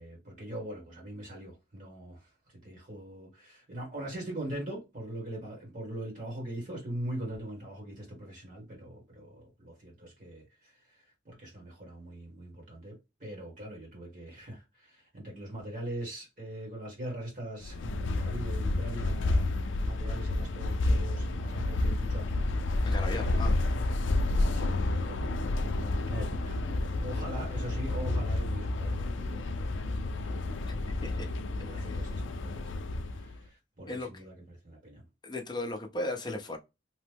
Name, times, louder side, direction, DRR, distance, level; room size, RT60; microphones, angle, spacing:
voice 1, 0.0-22.9 23.2-23.4 24.5-25.3 25.6-35.1, right 1 dB, 40° right, 1.3 m, -42 dB
sound 1, 17.6-33.4, left 2 dB, 80° left, 0.4 m, -30 dB
voice 2, 22.8-23.6 30.6-31.3 31.8-31.9 33.9-34.2 35.2-36.6, left 2 dB, 20° left, 0.6 m, -36 dB
3.0 x 2.1 x 3.3 m
head